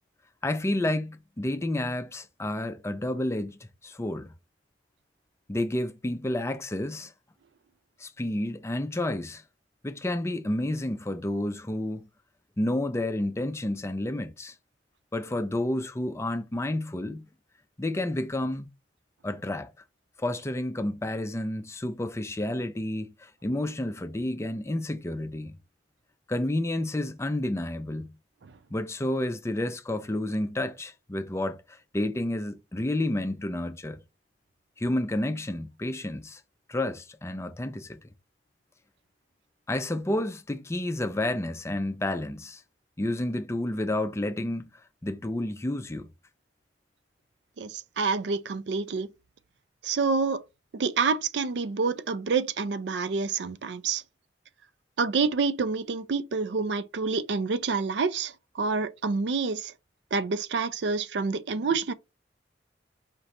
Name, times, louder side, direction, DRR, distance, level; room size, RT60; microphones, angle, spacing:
voice 1, 0.4-4.3 5.5-7.1 8.0-9.4 9.8-12.1 12.6-14.5 15.1-17.2 17.8-18.7 19.2-19.7 20.2-25.6 26.3-28.1 28.7-34.0 34.8-36.4 36.7-38.0 39.7-42.6 43.0-44.7 45.0-46.1, left 1 dB, 15° left, 0.4 m, -30 dB
voice 2, 47.6-49.1 49.8-50.4 50.7-54.0 55.0-59.7 60.1-61.9, right 4 dB, 70° right, 0.4 m, -28 dB
5.0 x 2.9 x 3.2 m
head